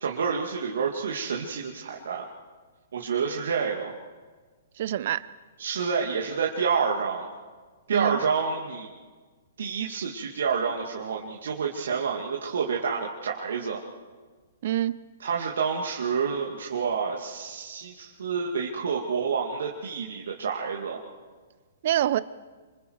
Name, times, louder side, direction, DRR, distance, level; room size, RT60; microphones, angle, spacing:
voice 1, 0.0-2.3 2.9-4.0 5.6-7.3 7.9-8.9 9.6-13.8 15.2-21.0, right 6 dB, 70° right, -1 dB, 2.3 m, -28 dB
voice 2, 4.8-5.3 7.9-8.2 14.6-15.0 21.8-22.2, right 12 dB, 55° right, 18 dB, 0.8 m, -26 dB
28.0 x 25.5 x 4.7 m, 1.4 s
hypercardioid pair, 120°, 0 cm